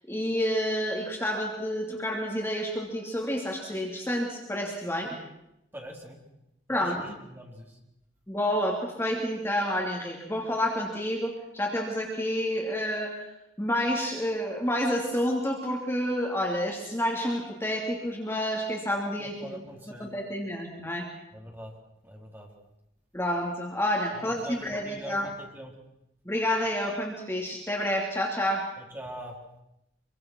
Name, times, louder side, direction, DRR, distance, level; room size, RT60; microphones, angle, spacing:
voice 1, 0.1-5.1 6.7-7.0 8.3-13.3 13.6-19.6 20.0-21.1 23.1-25.3 26.2-28.7, equal, 15° left, -1 dB, 2.9 m, -29 dB
voice 2, 5.7-6.2 6.7-7.8 19.2-20.1 21.3-21.7 22.0-22.5 24.1-25.7 28.8-29.4, equal, 10° right, 0 dB, 4.0 m, -43 dB
25.5 x 24.0 x 6.3 m, 0.88 s
head